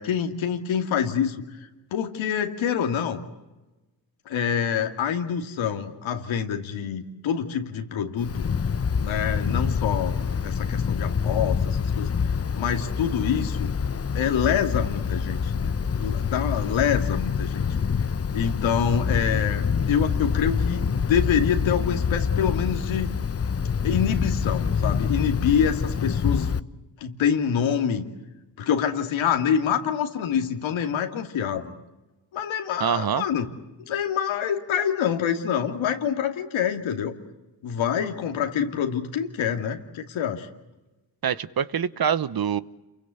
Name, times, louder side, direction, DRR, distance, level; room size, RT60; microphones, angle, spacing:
voice 1, 0.0-3.2 4.3-8.5 9.0-13.7 14.1-17.7 18.3-23.1 23.8-26.6 27.0-28.0 28.6-31.7 32.3-33.5 33.9-37.2 37.6-40.5, left 8 dB, 90° left, 2.6 m, -26 dB
Wind, 8.2-26.6, left 6 dB, 30° left, 0.9 m, -26 dB
voice 2, 32.8-33.2 41.2-42.6, right 8 dB, 50° right, 1.1 m, -25 dB
28.5 x 23.0 x 8.3 m
cardioid pair, 55°, 45 cm